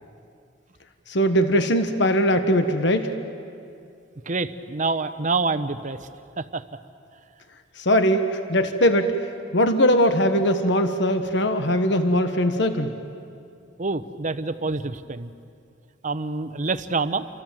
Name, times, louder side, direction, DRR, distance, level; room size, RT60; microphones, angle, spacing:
voice 1, 1.1-3.1 7.8-9.1 9.5-12.9, equal, 70° left, 8 dB, 1.4 m, -20 dB
voice 2, 4.3-6.1 6.4-6.6 13.8-15.3 16.0-17.3, right 3 dB, 45° right, 12 dB, 0.9 m, -27 dB
29.5 x 24.5 x 7.6 m, 2.4 s
head